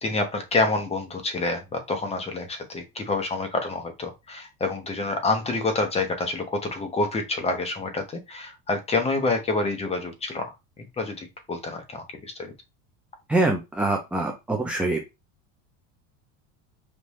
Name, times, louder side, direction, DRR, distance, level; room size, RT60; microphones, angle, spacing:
voice 1, 0.0-10.5 10.8-12.5, left 3 dB, 15° left, 5 dB, 0.9 m, -27 dB
voice 2, 13.3-15.0, right 2 dB, 5° right, 1 dB, 0.4 m, -24 dB
5.3 x 2.6 x 3.1 m, 0.23 s
cardioid pair, 150°, 39 cm